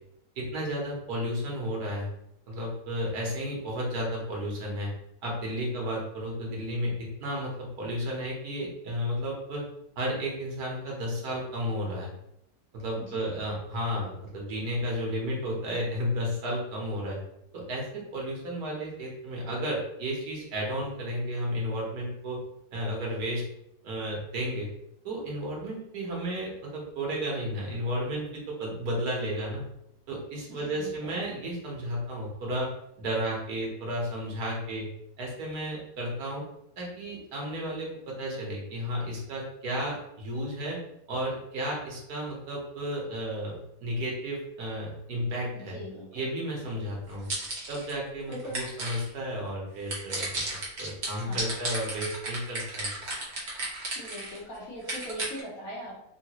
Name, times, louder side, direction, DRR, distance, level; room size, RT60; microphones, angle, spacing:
voice 1, 0.4-2.1 2.5-4.9 5.2-9.6 10.0-12.1 12.7-17.2 17.5-22.4 22.7-23.4 23.8-24.7 25.0-29.7 30.1-32.7 33.0-34.9 35.2-36.4 36.8-40.8 41.1-45.8 46.1-47.3 47.7-50.4 50.8-52.9, equal, 70° right, -2 dB, 1.4 m, -33 dB
voice 2, 13.0-13.3 30.6-31.2 45.5-46.3 46.6-46.8 48.3-48.6 51.2-51.5 53.9-56.0, equal, 60° left, -4 dB, 1.4 m, -41 dB
sound 1, 47.1-47.9 48.3-49.1 49.9-54.4 54.8-55.4, right 2 dB, 50° right, 1.1 m, -33 dB
3.7 x 2.3 x 2.9 m, 0.78 s
omnidirectional pair, 1.7 m